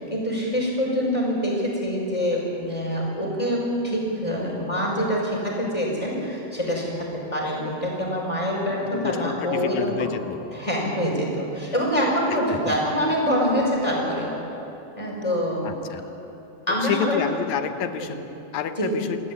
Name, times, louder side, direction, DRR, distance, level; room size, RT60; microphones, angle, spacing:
voice 1, 0.0-10.1 10.5-14.4 15.0-15.8 16.7-17.2 18.8-18.9, equal, 10° left, -2 dB, 5.2 m, -25 dB
voice 2, 8.8-10.4 12.5-12.8 15.6-16.0 16.7-18.2 18.5-19.2, left 9 dB, 70° left, 9 dB, 2.0 m, -29 dB
27.5 x 14.0 x 8.8 m, 2.9 s
omnidirectional pair, 3.8 m